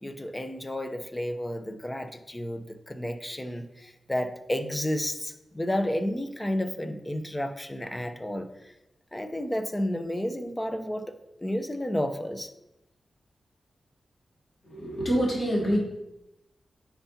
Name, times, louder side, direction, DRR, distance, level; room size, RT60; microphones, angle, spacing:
voice 1, 0.0-8.7 9.1-11.2 11.4-12.5, left 1 dB, 15° left, 8 dB, 0.8 m, -31 dB
voice 2, 14.6-15.8, equal, 50° left, -4 dB, 2.9 m, -26 dB
9.4 x 5.8 x 2.8 m, 0.90 s
cardioid pair, 70°, 0 cm